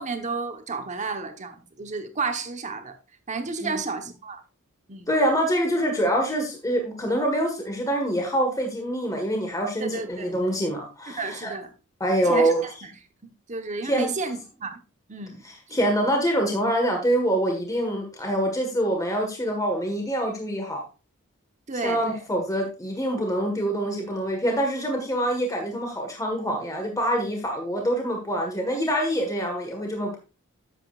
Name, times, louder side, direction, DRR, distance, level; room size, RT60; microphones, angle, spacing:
voice 1, 0.0-3.0 3.3-4.4 4.9-5.1 9.8-10.3 11.2-11.7 12.2-12.9 13.5-14.8 15.1-15.8 21.7-22.0, right 4 dB, 35° right, 1.2 m, -32 dB
voice 2, 5.1-11.5 12.0-12.6 13.8-14.1 15.7-20.8 21.8-30.2, right 1 dB, 15° left, 1.6 m, -25 dB
11.0 x 7.6 x 2.5 m
head